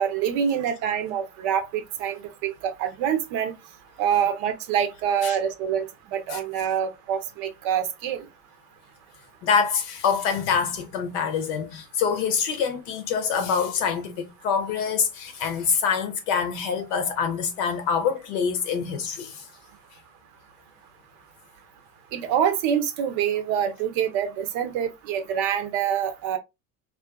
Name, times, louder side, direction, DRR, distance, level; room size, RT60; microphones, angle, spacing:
voice 1, 0.0-3.5 4.0-5.9 6.1-8.2 22.1-26.4, right 8 dB, 65° right, 0.7 m, -26 dB
voice 2, 9.4-19.5, left 6 dB, 75° left, 0.7 m, -25 dB
2.4 x 2.4 x 2.2 m
hypercardioid pair, 70°, 47 cm